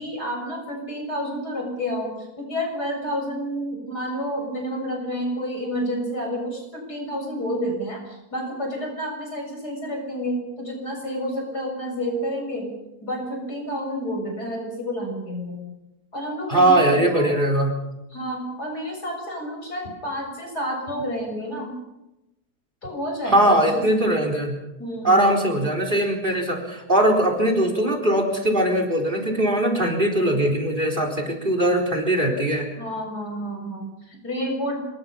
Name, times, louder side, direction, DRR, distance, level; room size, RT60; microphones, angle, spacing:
voice 1, 0.0-12.7 13.0-15.6 16.1-17.3 18.1-21.8 22.8-24.1 24.8-25.3 32.8-34.8, equal, 75° left, 1 dB, 7.8 m, -30 dB
voice 2, 16.5-17.7 23.3-24.6 25.0-32.7, right 1 dB, 30° right, 3 dB, 4.3 m, -20 dB
26.5 x 22.0 x 5.7 m, 0.93 s
omnidirectional pair, 1.7 m